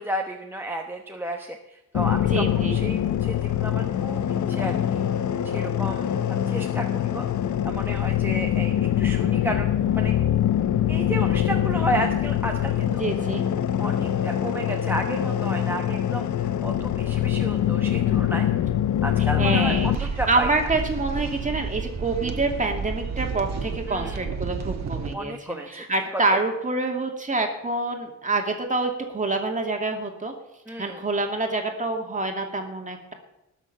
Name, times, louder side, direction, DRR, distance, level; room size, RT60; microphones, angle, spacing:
voice 1, 0.0-5.0 5.4-7.3 7.7-10.1 10.9-13.0 13.8-18.5 19.0-20.5 23.9-24.3 25.1-25.8 26.3-26.4 30.7-31.0, right 1 dB, 5° right, 1 dB, 1.1 m, -32 dB
sound 1, 1.9-20.0, left 10 dB, 65° left, 0.8 m, -24 dB
voice 2, 2.3-2.8 12.9-13.4 19.4-30.3 30.8-33.1, right 3 dB, 25° right, 3 dB, 2.5 m, -27 dB
sound 2, 19.7-25.1, right 5 dB, 60° right, 1.6 m, -31 dB
19.5 x 6.8 x 6.7 m, 0.89 s
cardioid pair, 120°, 31 cm